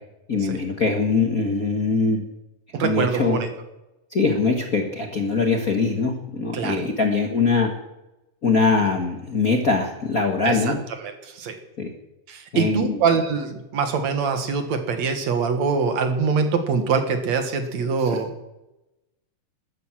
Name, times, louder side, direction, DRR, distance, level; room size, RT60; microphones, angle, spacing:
voice 1, 0.3-2.2 2.8-3.4 4.1-7.7 8.4-10.8 11.8-11.9 12.5-13.0 18.0-18.2, left 4 dB, 40° left, 3 dB, 1.3 m, -22 dB
voice 2, 2.7-3.5 6.5-6.9 10.4-10.7 11.0-11.5 12.3-18.3, right 5 dB, 60° right, 7 dB, 2.6 m, -24 dB
13.5 x 11.0 x 9.0 m, 0.96 s
omnidirectional pair, 3.7 m